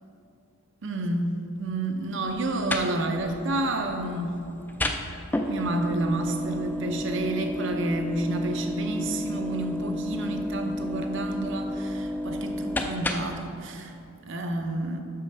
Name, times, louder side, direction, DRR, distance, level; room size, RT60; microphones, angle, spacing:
voice 1, 0.8-4.4 5.5-14.0 14.3-15.0, right 2 dB, 55° right, 4 dB, 0.7 m, -30 dB
sound 1, 2.3-13.5, left 1 dB, 10° left, 0.3 m, -32 dB
6.4 x 5.7 x 5.4 m, 2.7 s
head